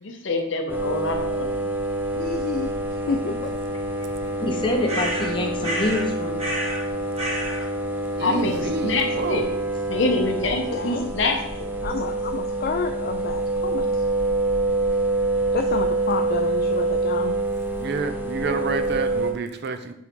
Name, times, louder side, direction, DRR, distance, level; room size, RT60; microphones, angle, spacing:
voice 1, 0.0-1.5 8.2-9.4 9.9-11.7, left 3 dB, 70° left, 3 dB, 0.8 m, -25 dB
sound 1, 0.7-19.3, right 2 dB, 10° right, 0.7 m, -26 dB
voice 2, 2.1-2.7 3.1-3.5 10.7-11.1 11.8-14.0 14.9-15.0 15.5-17.4, left 4 dB, 50° left, 5 dB, 0.3 m, -30 dB
voice 3, 4.3-6.5, left 2 dB, 25° left, 1 dB, 0.9 m, -26 dB
sound 2, 4.9-6.1 6.4-6.8 7.1-7.7, right 1 dB, 30° right, 1.7 m, -29 dB
voice 4, 8.2-9.6 15.3-15.5 17.8-19.9, right 3 dB, 55° right, 8 dB, 0.5 m, -29 dB
6.1 x 4.5 x 3.7 m, 0.79 s
head